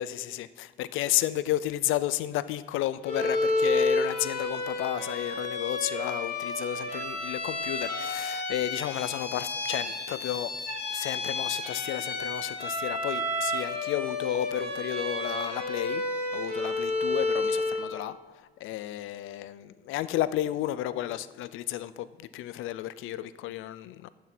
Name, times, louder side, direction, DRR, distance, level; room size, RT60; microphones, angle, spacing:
voice 1, 0.0-10.5 10.9-16.0 16.3-18.2 18.6-24.1, left 13 dB, 90° left, 16 dB, 0.5 m, -32 dB
Bowed string instrument, 3.0-17.9, left 2 dB, 55° left, 4.3 m, -31 dB
11.5 x 7.5 x 5.9 m, 1.2 s
cardioid pair, 90°, 20 cm